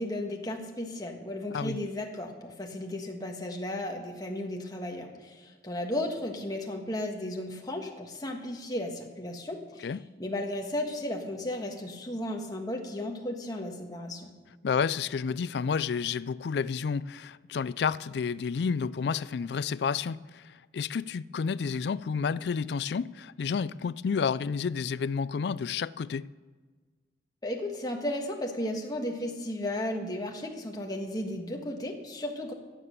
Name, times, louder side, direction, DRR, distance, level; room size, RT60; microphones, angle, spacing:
voice 1, 0.0-9.9 10.2-14.3 27.4-32.5, left 1 dB, 20° left, 1.5 m, -34 dB
voice 2, 14.6-26.3, left 6 dB, 65° left, 0.4 m, -30 dB
16.5 x 7.6 x 6.7 m
head